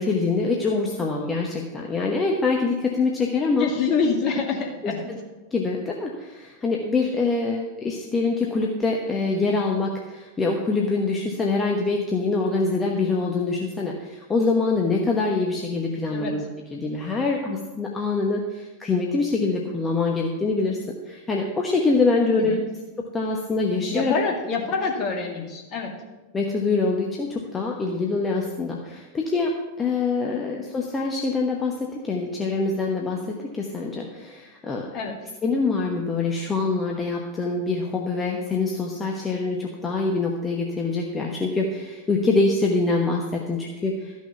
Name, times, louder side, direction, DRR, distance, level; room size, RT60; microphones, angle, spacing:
voice 1, 0.0-3.7 4.8-5.2 5.5-16.4 16.7-20.8 21.1-22.6 23.1-24.1 26.3-34.9 35.4-44.1, left 3 dB, 15° left, 0 dB, 1.2 m, -25 dB
voice 2, 3.6-5.1 16.1-16.3 22.4-22.6 23.9-25.9 34.9-35.2, left 4 dB, 35° left, 2 dB, 2.2 m, -26 dB
13.5 x 6.2 x 7.0 m, 1.2 s
figure-of-eight pair, 90°, 0 cm